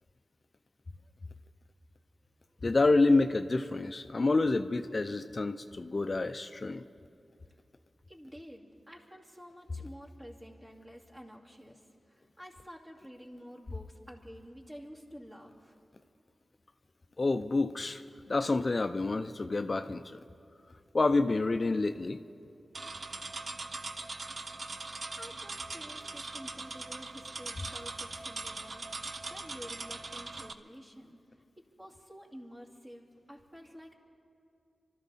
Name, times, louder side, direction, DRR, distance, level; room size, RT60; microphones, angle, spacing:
voice 1, 2.6-6.8 17.2-18.0 18.3-20.2 20.9-22.2, left 3 dB, 45° left, 9 dB, 0.5 m, -28 dB
voice 2, 8.1-15.8 24.8-31.2 31.6-34.0, equal, 25° right, -3 dB, 2.5 m, -50 dB
sound 1, 22.7-30.5, right 3 dB, 55° right, 0.7 m, -41 dB
25.5 x 13.0 x 4.2 m, 2.6 s
cardioid pair, 55°, 0 cm